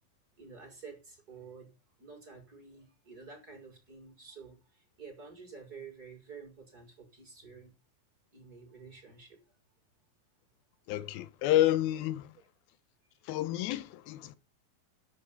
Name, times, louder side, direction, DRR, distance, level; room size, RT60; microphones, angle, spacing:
voice 1, 0.4-7.7 8.3-9.4 12.3-12.4, right 5 dB, 25° right, 6.2 m, -50 dB
voice 2, 10.9-12.3 13.2-14.4, left 14 dB, 80° left, 2.7 m, -29 dB
11.0 x 7.7 x 9.2 m
omnidirectional pair, 4.3 m